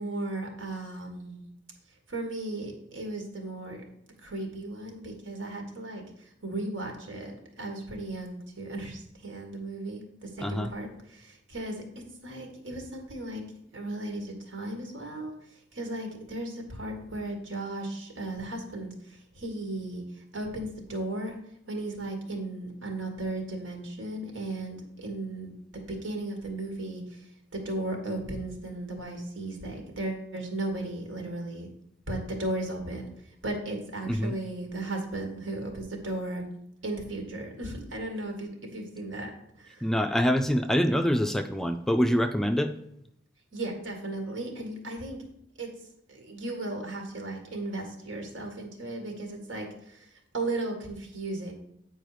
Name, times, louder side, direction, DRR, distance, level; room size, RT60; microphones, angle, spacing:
voice 1, 0.0-1.5 1.9-3.8 4.2-13.4 13.7-21.4 21.7-25.5 25.9-31.7 32.1-36.5 36.8-39.3 39.6-39.9 43.5-45.2 45.6-45.7 46.1-51.5, right 2 dB, 90° right, 2 dB, 1.8 m, -36 dB
voice 2, 10.4-10.7 34.1-34.4 39.8-42.8, equal, ahead, 7 dB, 0.3 m, -25 dB
8.9 x 4.4 x 4.9 m, 0.76 s
head